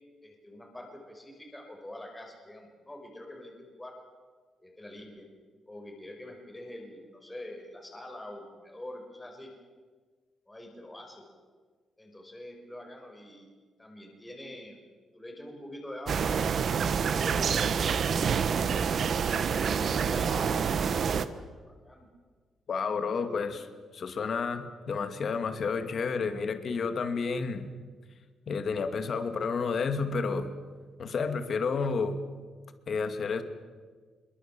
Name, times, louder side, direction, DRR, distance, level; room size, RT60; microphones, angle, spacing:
voice 1, 0.2-3.9 4.6-5.3 5.7-9.5 10.5-11.2 12.0-13.5 13.8-14.8 15.1-16.3 16.7-17.6 18.0-18.5 19.6-22.1 23.1-23.5, left 1 dB, 10° left, 2 dB, 5.3 m, -45 dB
sound 1, 16.1-21.3, right 6 dB, 50° right, 1.2 m, -27 dB
voice 2, 22.7-23.7 23.9-27.7 28.5-30.5 31.0-32.2 32.9-33.4, left 5 dB, 45° left, 8 dB, 2.2 m, -30 dB
25.5 x 23.0 x 7.6 m, 1.5 s
cardioid pair, 135°, 0 cm